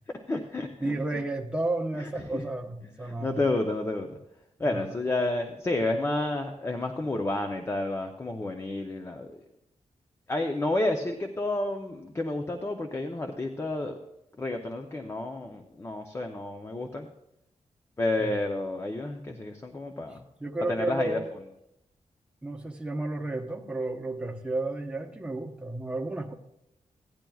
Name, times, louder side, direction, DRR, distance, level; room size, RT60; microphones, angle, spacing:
voice 1, 0.3-0.9 2.0-2.4 3.2-4.2 4.6-9.3 10.3-13.9 14.4-17.1 18.0-20.2 20.7-21.2, left 2 dB, 20° left, 4 dB, 0.6 m, -30 dB
voice 2, 0.8-3.4 4.6-5.1 18.2-18.4 20.4-21.3 22.4-26.3, right 2 dB, 10° right, 2 dB, 0.8 m, -32 dB
15.5 x 10.5 x 2.3 m, 0.83 s
wide cardioid pair, 175°, 13 cm